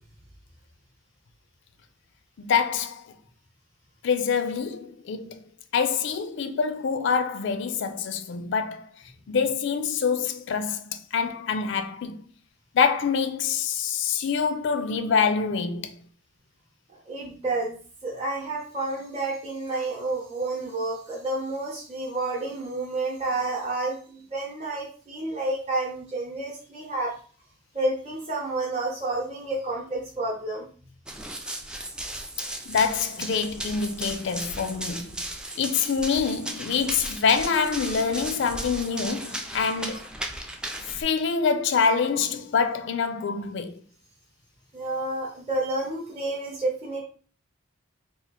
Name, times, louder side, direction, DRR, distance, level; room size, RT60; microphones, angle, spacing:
voice 1, 2.4-3.1 4.0-5.4 5.7-8.9 9.3-12.2 12.7-15.9 32.7-35.2 35.6-40.1 40.9-43.8, left 6 dB, 65° left, 0.4 m, -26 dB
voice 2, 17.1-17.8 18.0-27.1 27.7-30.6 44.7-47.0, right 2 dB, 30° right, 0.8 m, -30 dB
Run, 31.1-41.0, right 1 dB, 5° right, 0.3 m, -36 dB
2.9 x 2.4 x 4.0 m
head